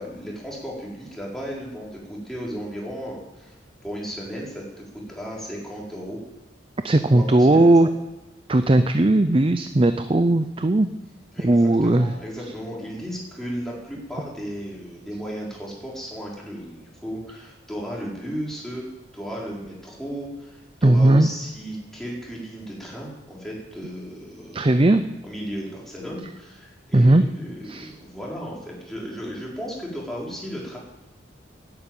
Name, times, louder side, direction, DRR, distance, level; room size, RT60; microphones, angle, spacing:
voice 1, 0.0-3.5 3.8-4.6 5.1-6.2 7.0-7.6 11.3-18.9 19.1-24.8 25.2-30.8, equal, ahead, -4 dB, 4.5 m, -35 dB
voice 2, 6.8-7.9 8.5-10.9 11.4-12.1 20.8-21.3 24.5-25.0 26.9-27.2 27.6-27.9, right 2 dB, 30° right, 9 dB, 0.6 m, -17 dB
11.0 x 9.7 x 9.1 m, 1.1 s
head